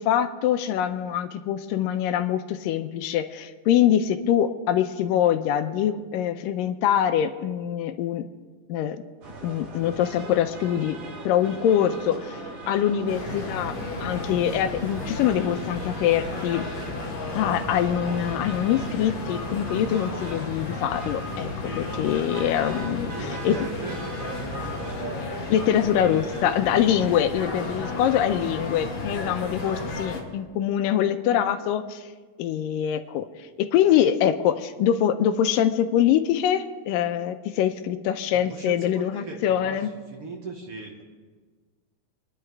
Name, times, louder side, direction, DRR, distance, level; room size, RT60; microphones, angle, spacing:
voice 1, 0.0-8.3 8.7-9.0 9.4-11.0 11.2-16.7 17.3-23.1 23.4-23.6 25.5-32.0 32.4-33.3 33.6-39.9, left 10 dB, 85° left, 9 dB, 2.4 m, -24 dB
sound 1, 9.2-24.9, right 2 dB, 65° right, 3.1 m, -40 dB
sound 2, 13.1-30.2, left 3 dB, 50° left, 3.4 m, -33 dB
voice 2, 22.8-25.3 25.8-26.6 27.7-28.1 29.6-30.0 38.3-41.0, right 3 dB, 50° right, 0 dB, 2.0 m, -39 dB
28.0 x 11.0 x 3.6 m, 1.4 s
omnidirectional pair, 3.9 m